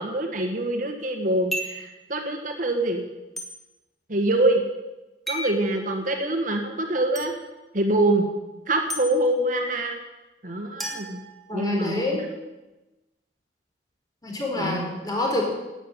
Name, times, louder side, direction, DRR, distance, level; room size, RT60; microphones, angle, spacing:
voice 1, 0.0-3.1 4.1-4.6 5.3-7.3 7.7-8.3 8.7-10.0 10.4-11.2 11.5-12.0 14.6-15.0, right 1 dB, 50° right, 3 dB, 1.7 m, -25 dB
sound 1, 1.5-1.9 3.4-3.5 5.3-5.6 7.1-7.3 8.9-9.0 10.8-11.9, equal, ahead, 2.7 m, -32 dB
voice 2, 11.5-12.3 14.2-15.4, left 2 dB, 20° left, -1 dB, 4.2 m, -27 dB
12.0 x 9.2 x 9.8 m, 1.1 s
head